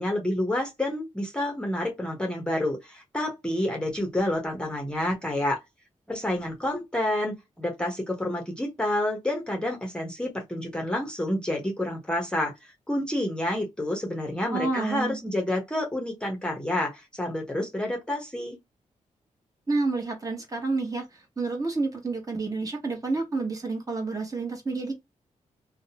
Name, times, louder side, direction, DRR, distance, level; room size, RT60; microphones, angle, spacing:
voice 1, 0.0-5.6 6.1-18.6, left 1 dB, 5° left, 0.8 m, -29 dB
voice 2, 14.5-15.2 19.7-21.1 21.4-24.9, right 3 dB, 25° right, 1.1 m, -29 dB
2.6 x 2.1 x 2.7 m
cardioid pair, 85°, 13 cm